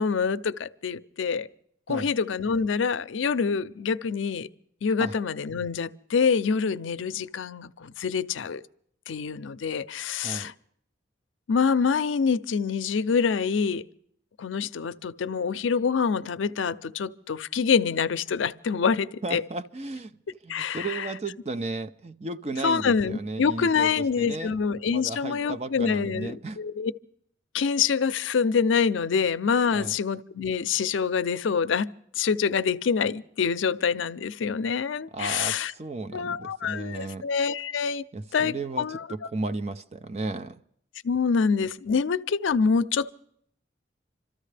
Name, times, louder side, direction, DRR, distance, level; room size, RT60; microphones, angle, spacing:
voice 1, 0.0-1.5 1.9-4.5 4.8-8.6 9.1-10.5 11.5-13.9 14.4-19.4 20.5-21.1 22.6-26.9 27.5-35.7 36.1-38.0 38.3-39.1 41.0-43.1, left 5 dB, 90° left, 0.5 m, -26 dB
voice 2, 19.2-20.1 20.4-24.6 24.8-26.6 29.7-29.9 35.1-37.3 38.1-40.6, right 2 dB, 35° right, 0.5 m, -34 dB
26.5 x 13.5 x 3.3 m
head